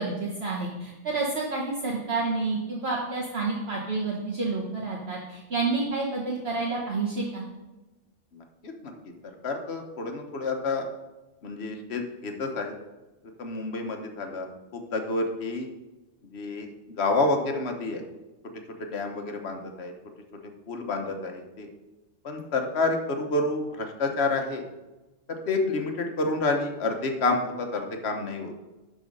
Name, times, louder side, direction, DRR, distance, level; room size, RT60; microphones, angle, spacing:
voice 1, 0.0-7.5, right 3 dB, 55° right, -3 dB, 1.4 m, -29 dB
voice 2, 8.3-8.9 9.4-10.9 11.4-12.8 13.4-15.7 16.3-18.0 18.8-19.9 20.7-21.7 22.2-24.6 25.3-28.5, left 3 dB, 60° left, 4 dB, 1.3 m, -29 dB
11.5 x 4.0 x 5.3 m, 1.1 s
omnidirectional pair, 1.3 m